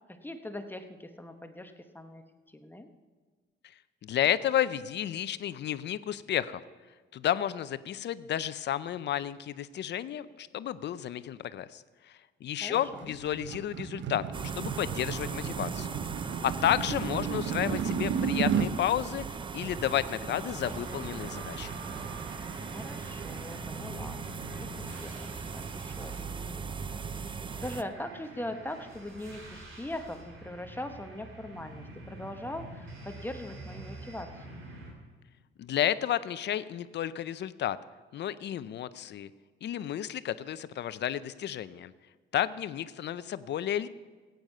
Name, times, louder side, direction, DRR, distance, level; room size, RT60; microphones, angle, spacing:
voice 1, 0.2-2.9 12.6-13.1 16.7-17.0 22.7-25.1 25.5-26.6 27.2-34.6, left 1 dB, 10° left, 6 dB, 1.0 m, -41 dB
voice 2, 4.0-6.6 7.1-14.2 14.6-15.9 16.4-21.7 35.6-37.8 38.1-39.3 39.6-41.9 42.3-43.9, left 11 dB, 60° left, 15 dB, 0.6 m, -31 dB
sound 1, 12.7-18.7, right 7 dB, 65° right, 0.9 m, -33 dB
sound 2, 14.3-27.8, right 5 dB, 25° right, 0.5 m, -39 dB
sound 3, 20.6-34.9, right 2 dB, 85° right, 3.0 m, -47 dB
15.5 x 9.2 x 5.5 m, 1.4 s
cardioid pair, 90°, 20 cm